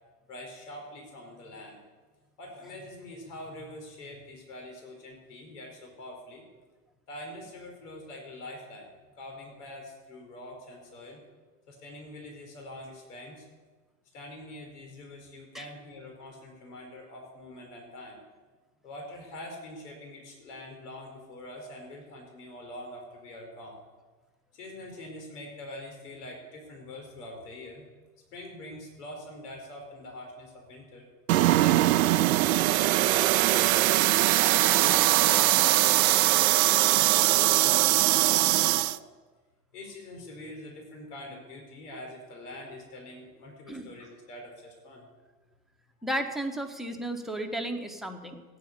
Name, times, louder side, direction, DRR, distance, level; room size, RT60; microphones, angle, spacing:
voice 1, 0.3-1.8 2.4-6.4 7.1-11.2 11.7-13.4 14.1-18.2 18.8-23.8 24.5-27.9 28.3-31.1 31.6-33.8 34.5-39.0 39.7-45.0, left 1 dB, 65° left, 2 dB, 4.4 m, -44 dB
sound 1, 31.3-39.0, right 16 dB, 55° right, 0.6 m, -22 dB
voice 2, 46.0-48.4, right 1 dB, ahead, 3 dB, 1.5 m, -33 dB
16.0 x 9.6 x 8.3 m, 1.3 s
figure-of-eight pair, 90°, 50 cm